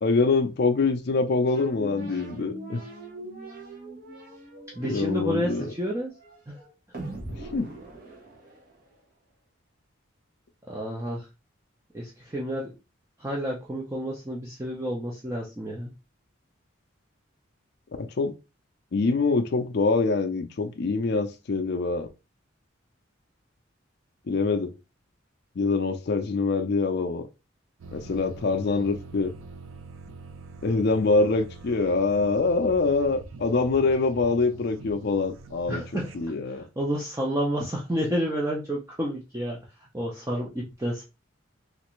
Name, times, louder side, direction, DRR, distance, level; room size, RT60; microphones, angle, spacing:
voice 1, 0.0-2.8 4.8-5.7 7.5-7.7 18.0-18.3 18.9-22.1 24.3-24.7 25.6-27.2 27.9-29.3 30.6-35.8 36.1-36.6, left 3 dB, 55° left, 0.4 m, -24 dB
sound 1, 1.5-9.0, right 1 dB, 45° right, 0.9 m, -42 dB
voice 2, 4.8-6.1 6.5-6.6 10.7-11.3 11.9-12.7 13.2-15.9 35.7-36.1 36.5-39.6 39.9-41.0, equal, 15° right, 0.6 m, -30 dB
sound 2, 27.8-36.3, right 3 dB, 85° right, 0.5 m, -44 dB
3.2 x 2.5 x 3.0 m
head